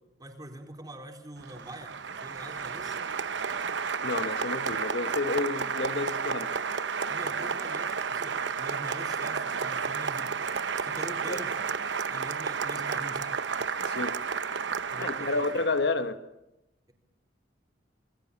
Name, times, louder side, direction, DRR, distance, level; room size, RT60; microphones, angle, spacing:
voice 1, 0.2-1.9 2.2-3.0 7.1-10.4 10.8-11.6 12.1-13.4 14.9-15.4, right 1 dB, 20° right, 4.4 m, -44 dB
Applause, 1.4-15.8, right 6 dB, 75° right, 0.9 m, -32 dB
voice 2, 4.0-6.8 11.3-11.4 13.8-14.2 15.0-16.2, left 3 dB, 65° left, 1.5 m, -30 dB
29.5 x 21.0 x 7.2 m
head